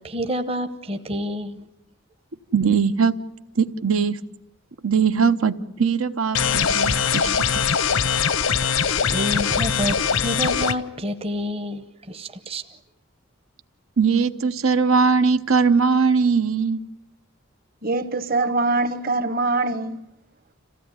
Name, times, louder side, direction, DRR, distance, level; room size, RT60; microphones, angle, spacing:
voice 1, 0.0-1.7 9.1-12.6, equal, 30° right, 0.8 m, -28 dB
voice 2, 2.5-3.2 3.6-4.2 4.8-7.3 7.5-7.6 14.0-16.8, right 5 dB, 80° right, 0.9 m, -20 dB
sound 1, 6.3-10.7, left 6 dB, 85° left, 0.9 m, -21 dB
voice 3, 17.8-20.0, right 3 dB, 45° right, 1.2 m, -23 dB
27.0 x 16.0 x 9.7 m
head